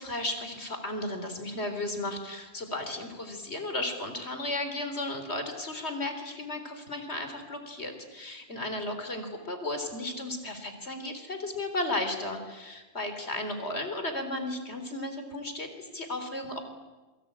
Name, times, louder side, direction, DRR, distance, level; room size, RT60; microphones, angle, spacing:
voice 1, 0.0-16.6, left 1 dB, 75° left, 7 dB, 4.1 m, -34 dB
27.5 x 23.5 x 8.9 m, 1.2 s
omnidirectional pair, 1.1 m